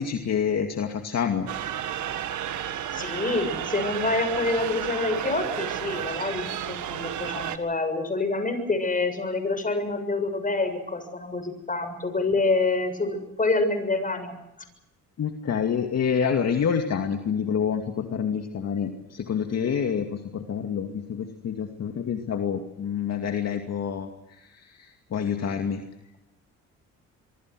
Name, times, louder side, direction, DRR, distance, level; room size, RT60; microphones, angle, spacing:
voice 1, 0.0-1.5 15.2-24.1 25.1-25.8, left 7 dB, 60° left, 4 dB, 2.4 m, -27 dB
sound 1, 1.5-7.6, right 10 dB, 75° right, 1.9 m, -32 dB
voice 2, 2.9-14.3, left 3 dB, 25° left, 9 dB, 7.1 m, -27 dB
25.5 x 23.5 x 6.3 m, 0.88 s
cardioid pair, 90°, 30 cm